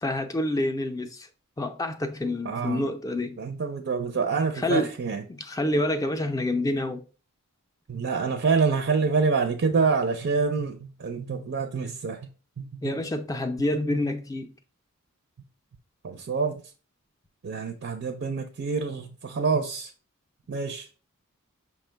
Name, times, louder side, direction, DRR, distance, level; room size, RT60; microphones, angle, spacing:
voice 1, 0.0-1.3 1.6-3.4 4.6-4.9 5.3-7.0 12.8-14.5, left 1 dB, 15° left, 0.4 m, -27 dB
voice 2, 2.5-2.9 3.4-5.2 7.9-12.3 12.6-12.9 16.0-16.6 17.4-19.9 20.5-20.9, right 4 dB, 55° right, 0.4 m, -27 dB
5.6 x 2.1 x 4.4 m
head